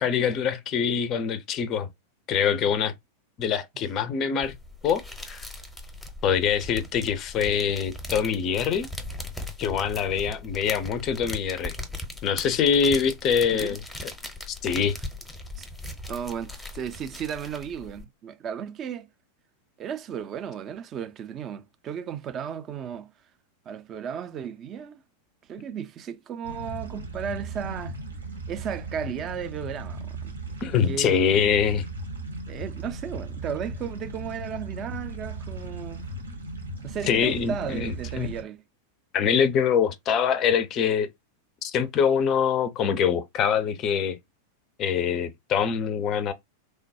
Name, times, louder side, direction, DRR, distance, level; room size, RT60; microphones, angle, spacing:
voice 1, 0.0-1.9 2.3-2.9 3.4-4.6 4.8-5.4 6.2-8.9 9.6-11.8 12.2-13.8 14.6-15.0 30.6-31.9 37.1-38.3 39.1-41.1 41.6-44.2 44.8-46.3, left 7 dB, 35° left, 0.4 m, -24 dB
sound 1, 4.4-18.0, left 1 dB, 5° left, 0.7 m, -39 dB
voice 2, 16.1-19.1 19.8-23.1 23.7-25.0 25.5-28.0 28.5-30.4 30.9-31.2 32.5-36.1 36.8-38.6, right 8 dB, 30° right, 0.4 m, -34 dB
sound 2, 26.4-38.4, right 2 dB, 75° right, 0.7 m, -37 dB
3.1 x 2.2 x 2.6 m
figure-of-eight pair, 90°, 0 cm